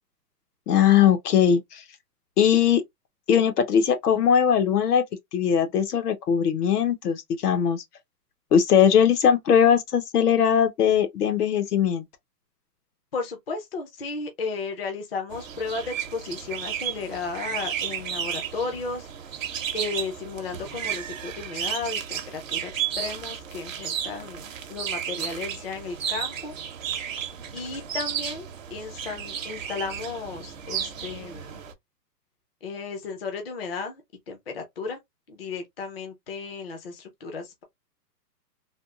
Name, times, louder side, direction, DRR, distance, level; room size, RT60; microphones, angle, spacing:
voice 1, 0.7-1.8 2.4-2.8 3.3-5.0 5.3-7.8 8.5-12.0, left 8 dB, 65° left, 0.8 m, -20 dB
voice 2, 13.1-26.6 26.8-27.1 27.5-31.6 32.6-34.0 34.3-35.0 35.3-37.6, left 4 dB, 40° left, 0.5 m, -34 dB
sound 1, 15.3-31.7, right 9 dB, 55° right, 0.7 m, -33 dB
3.5 x 2.2 x 2.3 m
hypercardioid pair, 175°, 49 cm